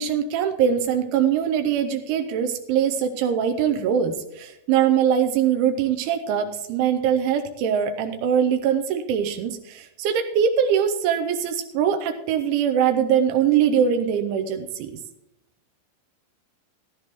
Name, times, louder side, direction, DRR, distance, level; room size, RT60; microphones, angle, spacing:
voice 1, 0.0-14.9, right 8 dB, 80° right, 6 dB, 2.9 m, -22 dB
15.0 x 12.5 x 3.0 m, 0.81 s
omnidirectional pair, 5.8 m